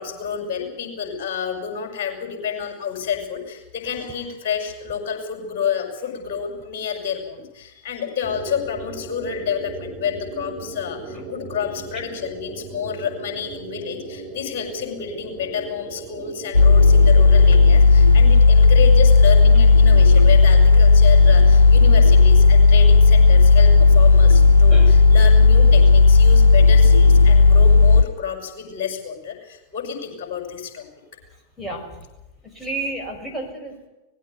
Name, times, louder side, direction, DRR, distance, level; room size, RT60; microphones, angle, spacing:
voice 1, 0.0-30.9, left 7 dB, 45° left, 3 dB, 6.4 m, -29 dB
sound 1, 8.2-17.6, right 3 dB, 35° right, 4.5 m, -37 dB
sound 2, 16.5-28.0, left 4 dB, 75° left, 0.8 m, -12 dB
voice 2, 31.6-32.1 32.4-33.9, right 2 dB, 5° left, -1 dB, 6.0 m, -31 dB
20.0 x 16.0 x 9.6 m, 1.0 s
figure-of-eight pair, 90°, 0 cm